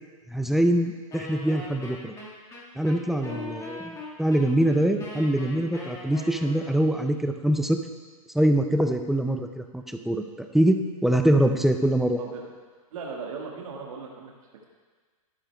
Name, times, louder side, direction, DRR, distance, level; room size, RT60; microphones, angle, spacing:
voice 1, 0.3-2.1 2.8-7.8 8.3-12.2, right 1 dB, ahead, 6 dB, 0.4 m, -24 dB
Wind instrument woodwind instrument, 1.1-6.9, left 2 dB, 15° left, 1.8 m, -40 dB
voice 2, 3.2-3.7 12.2-12.5 12.9-14.3, right 4 dB, 70° right, -1 dB, 1.7 m, -38 dB
13.5 x 10.0 x 2.3 m, 1.5 s
hypercardioid pair, 130°, 18 cm